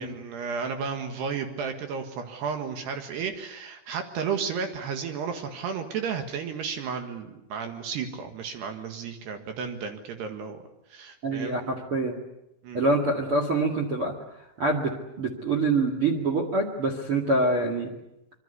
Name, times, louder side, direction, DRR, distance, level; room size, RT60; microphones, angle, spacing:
voice 1, 0.0-10.6 10.9-11.6 12.6-12.8, right 6 dB, 65° right, 5 dB, 3.5 m, -33 dB
voice 2, 11.2-12.2 12.7-14.1 14.6-17.9, right 2 dB, 45° right, 1 dB, 2.0 m, -25 dB
25.5 x 23.5 x 8.1 m, 0.89 s
omnidirectional pair, 5.5 m